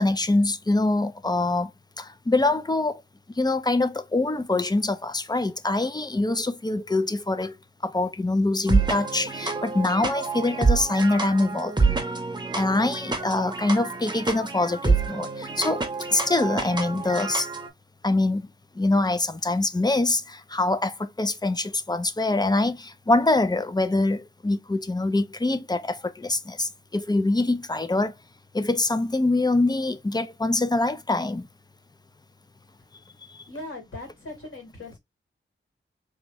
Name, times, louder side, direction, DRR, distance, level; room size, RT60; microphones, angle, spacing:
voice 1, 0.0-1.7 2.0-3.0 3.4-7.5 7.8-12.0 12.5-15.8 16.1-17.5 18.0-18.5 18.7-28.1 28.5-31.5 33.3-33.4, left 2 dB, 20° left, 0.5 m, -24 dB
sound 1, 8.7-17.7, right 4 dB, 20° right, 0.8 m, -27 dB
voice 2, 33.5-35.0, left 2 dB, 75° left, 2.4 m, -39 dB
3.5 x 2.6 x 3.0 m
wide cardioid pair, 70°, 21 cm